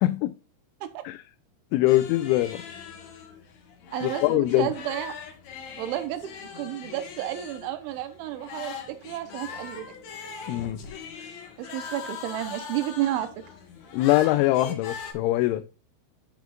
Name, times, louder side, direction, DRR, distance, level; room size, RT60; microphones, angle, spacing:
voice 1, 0.0-0.3 1.1-1.2 1.7-2.6 4.0-4.7 10.5-10.8 13.9-15.6, left 16 dB, 85° left, 2.9 m, -23 dB
sound 1, 1.9-15.1, left 6 dB, 60° left, 1.9 m, -41 dB
voice 2, 3.9-5.2 5.8-6.3 6.6-9.9 11.6-13.3, right 13 dB, 85° right, 3.2 m, -31 dB
11.0 x 7.2 x 2.4 m
omnidirectional pair, 5.5 m